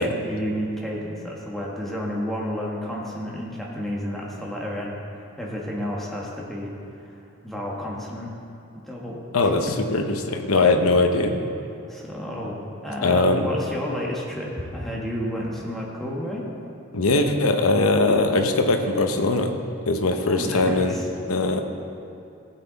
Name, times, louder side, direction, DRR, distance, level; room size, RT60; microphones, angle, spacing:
voice 1, 0.0-8.3 8.8-9.2 11.9-16.4 20.3-21.1, equal, ahead, -4 dB, 1.5 m, -31 dB
voice 2, 9.3-11.4 13.0-13.5 16.9-19.5 19.9-21.0 21.3-21.6, left 2 dB, 80° left, 5 dB, 0.9 m, -21 dB
15.5 x 7.9 x 4.1 m, 2.7 s
head